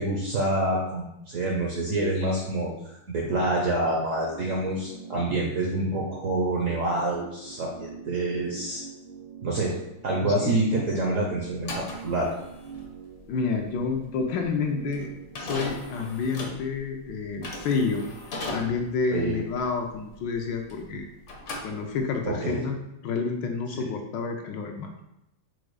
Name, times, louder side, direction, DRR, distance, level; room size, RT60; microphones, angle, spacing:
voice 1, 0.0-2.7 3.1-8.8 9.4-9.7 10.0-12.3 19.1-19.4 22.3-22.6 23.7-23.8, right 2 dB, 65° right, -2 dB, 0.8 m, -27 dB
sound 1, 3.1-15.6, right 6 dB, 85° right, 1.8 m, -45 dB
sound 2, 11.5-21.0 21.2-22.3, left 1 dB, 55° left, 0.9 m, -38 dB
voice 2, 13.3-15.1 15.3-18.1 18.5-21.1 21.6-22.8 23.0-24.9, left 5 dB, 75° left, 3 dB, 1.2 m, -29 dB
4.7 x 2.3 x 4.6 m, 0.85 s
omnidirectional pair, 2.1 m